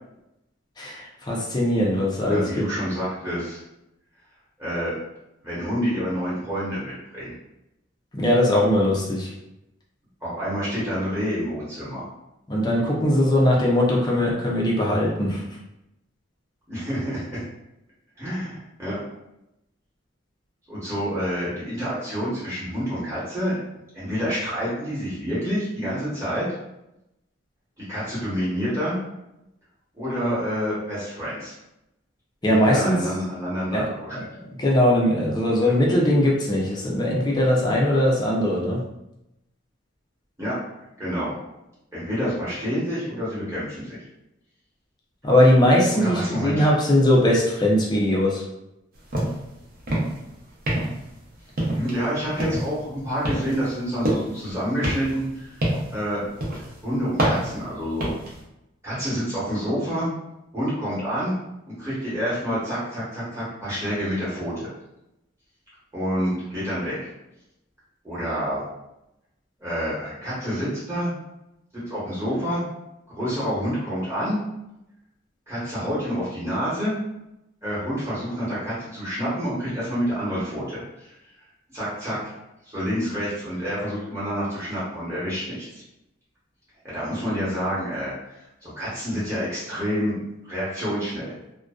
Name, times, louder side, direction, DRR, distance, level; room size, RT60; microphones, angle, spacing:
voice 1, 0.8-2.6 8.1-9.3 12.5-15.4 32.4-33.0 33.7-33.9 34.6-38.8 45.2-48.4, left 1 dB, 20° left, -3 dB, 0.5 m, -20 dB
voice 2, 2.2-3.6 4.6-4.9 5.4-7.3 10.2-12.0 16.7-17.4 18.2-19.0 20.7-23.5 23.9-26.4 27.8-29.0 29.9-31.5 32.4-34.2 35.6-35.7 40.4-40.6 41.0-41.3 41.9-44.0 45.9-46.7 51.7-56.3 56.8-58.1 58.8-60.1 60.5-61.4 61.8-64.7 65.9-67.0 68.0-68.6 69.6-71.1 71.9-72.6 73.1-74.4 75.5-77.0 77.6-81.1 81.7-82.3 82.6-85.8 86.8-88.1 88.6-91.3, equal, 15° right, -10 dB, 0.9 m, -28 dB
sound 1, 49.1-49.5 49.8-50.2 50.7-51.1 51.6-52.0 52.4-52.8 53.2-54.4 54.8-56.0 56.4-56.7 57.2-58.3, right 1 dB, 50° right, 0.6 m, -26 dB
2.5 x 2.2 x 2.3 m, 0.88 s
head